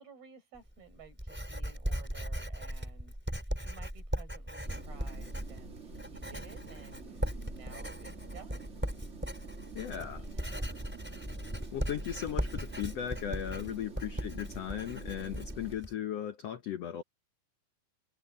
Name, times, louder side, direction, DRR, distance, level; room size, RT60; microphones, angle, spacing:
voice 1, 0.0-8.7 10.1-10.7, right 5 dB, 75° right, 7.6 m, -55 dB
Writing, 0.6-15.9, equal, 5° right, 4.7 m, -38 dB
sound 1, 4.6-15.8, right 5 dB, 30° right, 1.4 m, -49 dB
voice 2, 9.7-10.2 11.7-17.0, left 10 dB, 85° left, 1.4 m, -37 dB
omnidirectional pair, 4.4 m